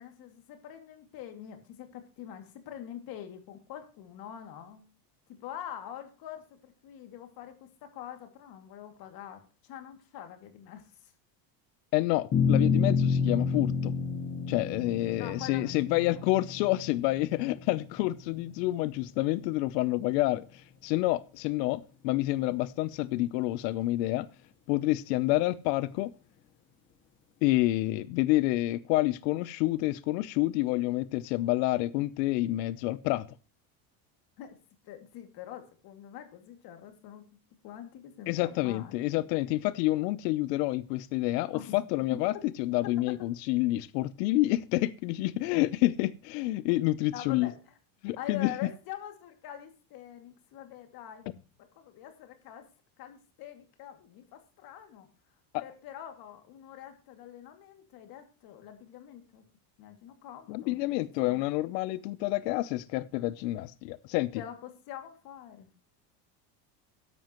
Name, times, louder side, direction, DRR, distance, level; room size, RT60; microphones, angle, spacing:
voice 1, 0.0-4.9 5.4-11.1 14.8-15.7 16.1-16.2 34.4-34.6 34.8-37.2 37.6-39.2 41.5-41.8 42.1-42.2 43.1-43.2 47.1-47.6 48.2-51.3 51.8-52.7 53.0-55.1 55.6-59.4 59.8-60.9 64.3-65.7, left 10 dB, 45° left, 2.4 m, -44 dB
voice 2, 11.9-13.9 14.5-24.3 24.7-26.1 27.4-33.3 38.3-42.3 42.6-47.5 48.0-48.7 60.5-64.4, left 17 dB, 85° left, 0.8 m, -28 dB
sound 1, 12.3-18.9, left 5 dB, 25° left, 1.2 m, -30 dB
13.0 x 11.0 x 3.0 m
cardioid pair, 170°, 48 cm